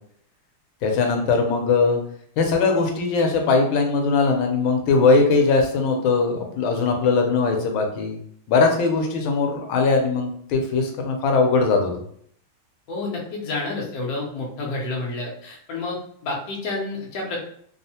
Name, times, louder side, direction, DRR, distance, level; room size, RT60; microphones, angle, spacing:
voice 1, 0.8-2.0 2.4-8.2 8.5-11.9, left 4 dB, 80° left, 3 dB, 1.4 m, -20 dB
voice 2, 12.9-17.4, left 2 dB, 60° left, -2 dB, 0.9 m, -29 dB
3.4 x 2.0 x 2.7 m, 0.64 s
omnidirectional pair, 2.2 m